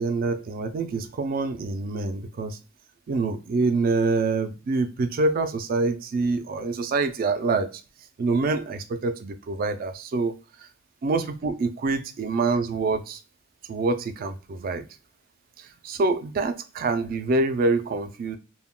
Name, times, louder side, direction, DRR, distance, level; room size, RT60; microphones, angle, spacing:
voice 1, 0.0-2.6 3.1-7.7 8.2-10.4 11.0-13.2 13.7-14.8 15.6-18.4, right 3 dB, 45° right, 10 dB, 0.3 m, -26 dB
2.1 x 2.1 x 3.5 m, 0.33 s
head